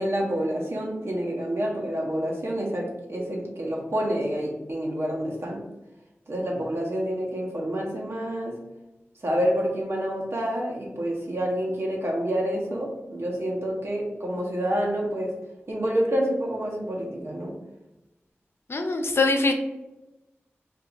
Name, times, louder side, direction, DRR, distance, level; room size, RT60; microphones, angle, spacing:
voice 1, 0.0-5.6 6.3-8.6 9.2-15.3 15.7-17.5, equal, 65° right, -2 dB, 1.0 m, -28 dB
voice 2, 18.7-19.5, left 3 dB, 60° left, 4 dB, 0.5 m, -23 dB
2.6 x 2.5 x 3.9 m, 0.99 s
cardioid pair, 45°, 5 cm